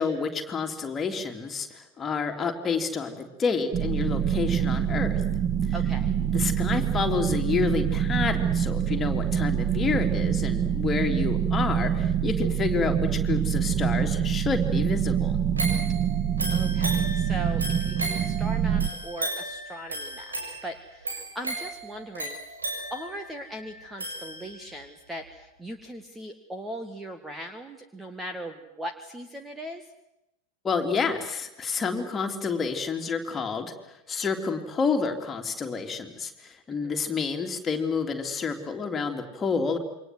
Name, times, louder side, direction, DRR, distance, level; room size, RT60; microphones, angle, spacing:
voice 1, 0.0-5.2 6.3-15.4 30.6-39.8, left 5 dB, 20° left, 3 dB, 3.5 m, -29 dB
sound 1, 3.7-18.9, right 8 dB, 30° right, 1.8 m, -25 dB
voice 2, 5.7-6.1 16.5-22.6 22.9-29.9 36.7-37.0, right 1 dB, 10° right, 7 dB, 2.0 m, -39 dB
sound 2, 15.6-24.8 25.3-25.4, right 2 dB, 75° right, 6.9 m, -35 dB
28.0 x 24.5 x 8.0 m, 0.91 s
figure-of-eight pair, 90°, 0 cm